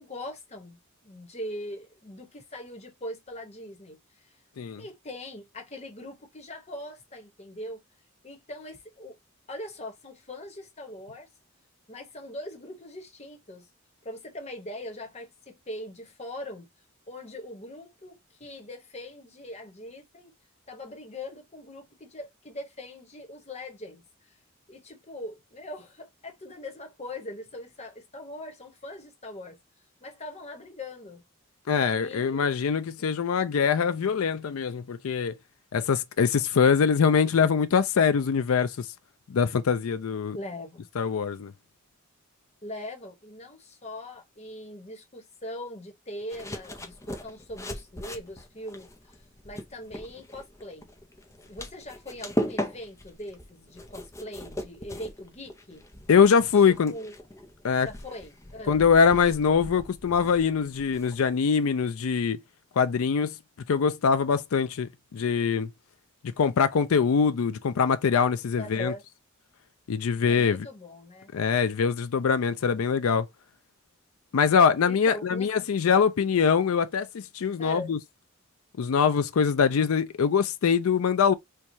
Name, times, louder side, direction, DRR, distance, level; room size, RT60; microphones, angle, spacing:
voice 1, 0.0-4.3 4.8-7.8 8.2-9.2 9.5-11.3 11.9-13.7 14.0-16.7 17.1-20.3 20.7-24.4 24.7-29.6 30.0-31.2 31.9-32.5 33.0-33.1 40.3-40.9 42.6-48.9 49.4-50.9 51.4-55.8 56.5-57.1 57.8-58.8 68.6-69.0 70.3-71.3 74.9-75.5 77.6-77.9, left 1 dB, 30° left, 1.1 m, -41 dB
voice 2, 31.7-35.4 35.7-38.9 39.3-40.4 41.0-41.5 56.1-56.9 57.6-57.9 58.7-62.4 62.8-63.3 63.7-65.7 66.4-68.9 69.9-70.7 71.3-73.3 74.3-78.0 78.8-81.3, left 6 dB, 80° left, 0.4 m, -23 dB
sound 1, 46.3-61.3, equal, 15° left, 0.6 m, -39 dB
4.5 x 2.3 x 2.6 m
head